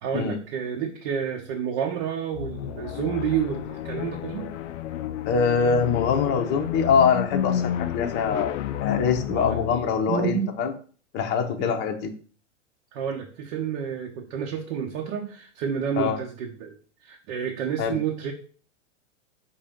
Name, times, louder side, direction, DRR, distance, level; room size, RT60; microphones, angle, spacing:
voice 1, 0.0-4.5 9.3-9.6 10.1-10.5 11.6-11.8 12.9-16.8 17.0-18.3, right 8 dB, 50° right, 0 dB, 0.9 m, -29 dB
sound 1, 2.3-10.0, left 11 dB, 70° left, 0.5 m, -31 dB
voice 2, 5.2-8.5 8.8-10.7 11.1-12.1 16.0-16.2 17.8-18.0, left 6 dB, 30° left, 3 dB, 0.7 m, -23 dB
5.4 x 2.7 x 3.5 m, 0.41 s
hypercardioid pair, 110°, 38 cm